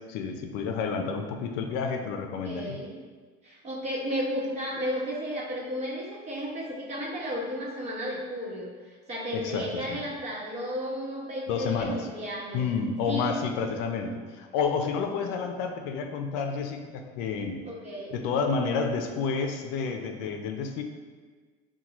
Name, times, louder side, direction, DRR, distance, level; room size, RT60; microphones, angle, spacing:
voice 1, 0.1-2.8 9.3-10.0 11.5-12.0 12.5-17.6 18.1-20.8, left 5 dB, 75° left, 4 dB, 0.5 m, -30 dB
voice 2, 2.4-3.0 3.4-12.7 13.1-13.4 15.1-15.3 17.7-18.1, equal, 35° right, -4 dB, 1.1 m, -33 dB
5.8 x 2.3 x 2.9 m, 1.5 s
supercardioid pair, 115°, 19 cm